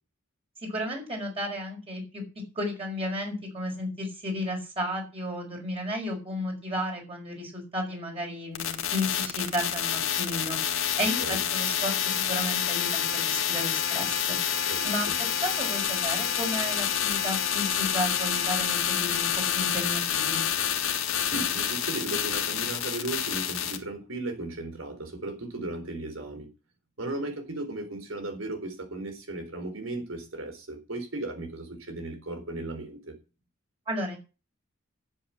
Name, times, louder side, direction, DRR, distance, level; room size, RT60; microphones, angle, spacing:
voice 1, 0.7-2.2 2.6-19.3 19.5-20.5 33.9-34.2, equal, 30° right, 5.3 m, -33 dB
sound 1, 8.5-23.8, left 9 dB, 90° left, 1.8 m, -28 dB
voice 2, 14.7-15.2 21.2-26.5 27.0-33.2, right 2 dB, 80° right, 4.1 m, -36 dB
11.0 x 7.8 x 7.7 m
head